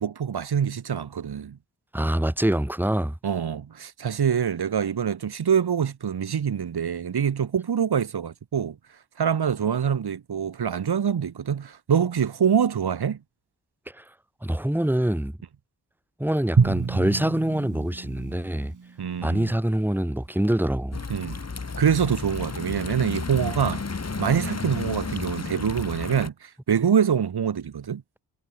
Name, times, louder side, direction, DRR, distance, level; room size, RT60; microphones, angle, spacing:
voice 1, 0.0-1.6 3.2-8.8 9.2-13.2 19.0-19.6 21.1-21.4 21.8-23.8 24.2-28.0, right 7 dB, 65° right, 2.3 m, -25 dB
voice 2, 1.9-3.1 13.9-14.0 14.4-15.3 16.2-18.7 19.2-21.0, right 1 dB, 5° right, 2.5 m, -25 dB
Drum, 16.6-19.5, right 5 dB, 45° right, 4.4 m, -27 dB
sound 1, 20.9-26.3, left 4 dB, 40° left, 4.3 m, -32 dB
cardioid pair, 85°, 41 cm